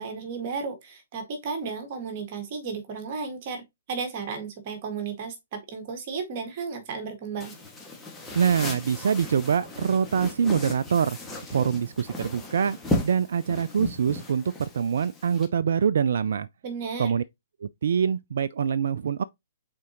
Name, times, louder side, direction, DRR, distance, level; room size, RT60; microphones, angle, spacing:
voice 1, 0.0-7.5 16.6-17.1, right 5 dB, 45° right, 1.9 m, -34 dB
sound 1, 7.4-15.5, left 1 dB, 10° left, 1.8 m, -35 dB
voice 2, 8.3-11.2 11.5-12.8 13.0-16.5 17.0-17.2 17.8-19.2, right 7 dB, 65° right, 0.3 m, -24 dB
7.4 x 4.3 x 2.9 m
figure-of-eight pair, 125°, 0 cm